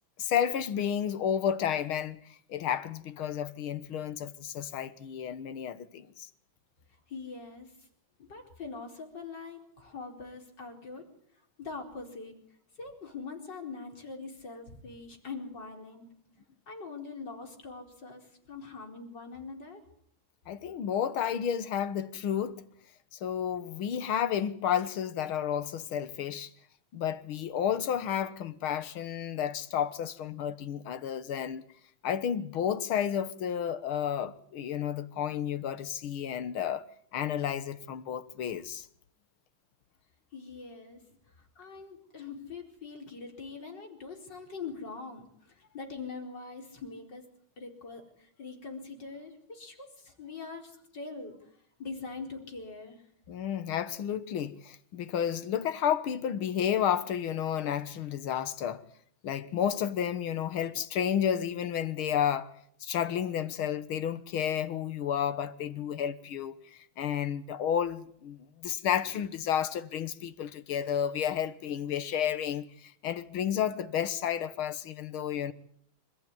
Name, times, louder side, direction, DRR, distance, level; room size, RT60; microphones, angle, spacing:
voice 1, 0.2-2.2 2.5-6.3 20.5-22.6 23.1-26.5 26.9-31.6 32.0-36.8 37.1-38.9 53.3-58.8 59.2-62.5 62.8-75.5, left 9 dB, 85° left, 2.1 m, -31 dB
voice 2, 7.1-7.7 8.2-11.1 11.6-12.3 12.8-16.0 16.7-18.2 18.5-19.8 40.3-41.0 41.6-45.2 45.7-47.2 47.6-48.1 48.4-51.4 51.8-53.0, left 4 dB, 55° left, 5.0 m, -42 dB
26.5 x 15.0 x 9.6 m
omnidirectional pair, 2.2 m